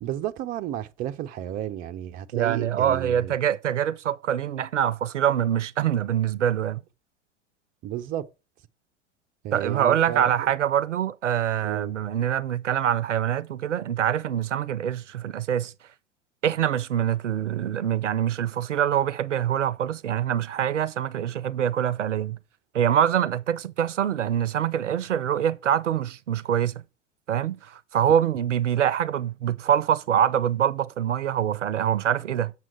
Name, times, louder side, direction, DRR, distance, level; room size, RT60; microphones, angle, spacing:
voice 1, 0.0-3.4 7.8-8.3 9.4-10.6 11.6-11.9, right 12 dB, 25° right, 0.5 m, -32 dB
voice 2, 2.3-6.8 9.5-15.7 16.4-22.4 22.7-26.8 27.3-32.5, right 10 dB, 80° right, 0.5 m, -24 dB
7.4 x 6.0 x 4.3 m
figure-of-eight pair, 85°, 36 cm